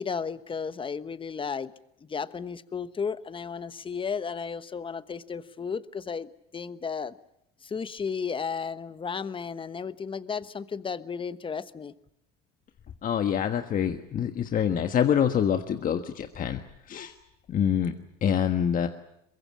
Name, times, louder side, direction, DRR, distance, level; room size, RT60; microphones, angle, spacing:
voice 1, 0.0-1.7 2.0-7.1 7.6-11.9, left 6 dB, 25° left, 14 dB, 1.2 m, -34 dB
voice 2, 13.0-16.6 16.9-17.1 17.5-17.9 18.2-18.9, left 8 dB, 45° left, 7 dB, 1.4 m, -26 dB
23.0 x 22.0 x 8.7 m, 0.79 s
supercardioid pair, 85°, 20 cm